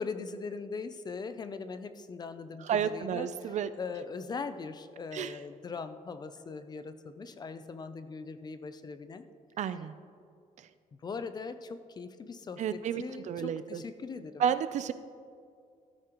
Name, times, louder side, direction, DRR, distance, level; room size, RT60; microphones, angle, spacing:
voice 1, 0.0-9.3 10.9-14.4, left 4 dB, 30° left, 10 dB, 0.5 m, -40 dB
voice 2, 2.7-3.7 5.1-5.3 9.6-10.0 12.6-13.8 14.4-14.9, right 8 dB, 60° right, 13 dB, 0.4 m, -31 dB
13.5 x 13.5 x 3.0 m, 2.3 s
wide cardioid pair, 175°, 14 cm